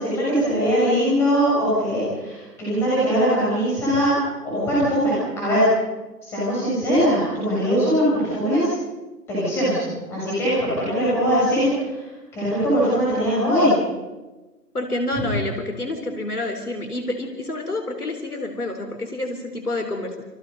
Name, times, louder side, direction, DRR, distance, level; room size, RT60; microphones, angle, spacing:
voice 1, 0.0-4.1 4.4-5.7 6.2-8.7 9.3-12.0 12.3-13.7, equal, 5° left, -8 dB, 6.6 m, -21 dB
voice 2, 14.7-20.2, left 2 dB, 65° left, 6 dB, 3.8 m, -28 dB
29.0 x 24.0 x 5.4 m, 1.1 s
figure-of-eight pair, 160°, 49 cm